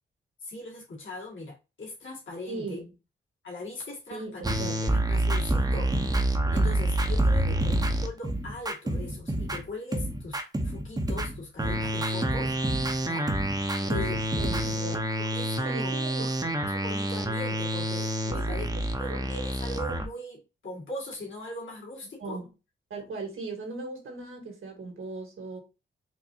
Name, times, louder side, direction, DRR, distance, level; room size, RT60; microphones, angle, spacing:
voice 1, 0.4-2.8 3.4-6.0 6.5-10.4 10.6-12.6 13.0-13.3 13.8-14.2 15.2-16.3 16.6-18.7 19.0-22.4, left 2 dB, 65° left, 2.0 m, -40 dB
voice 2, 2.5-2.9 4.1-4.8 7.5-7.6 13.8-15.1 15.6-16.6 18.3-19.3 22.2-22.5 22.9-25.6, right 3 dB, 75° right, 1.8 m, -39 dB
sound 1, 4.4-9.7 9.9-20.0, right 1 dB, 20° right, 0.7 m, -27 dB
4.5 x 2.6 x 2.7 m
cardioid pair, 75°, 21 cm